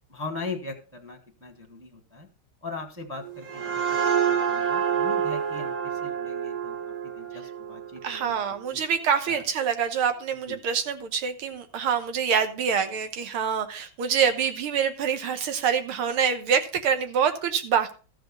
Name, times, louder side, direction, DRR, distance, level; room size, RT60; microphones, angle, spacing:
voice 1, 0.1-2.3 2.6-3.8 4.2-6.8 7.0-8.4 8.7-8.8 9.3-9.4 10.5-10.6, left 3 dB, 10° right, 4 dB, 1.0 m, -39 dB
sound 1, 3.2-8.7, right 7 dB, 45° right, 1.8 m, -28 dB
voice 2, 8.0-17.9, right 7 dB, 90° right, 8 dB, 2.0 m, -26 dB
13.5 x 5.1 x 5.3 m, 0.37 s
omnidirectional pair, 2.3 m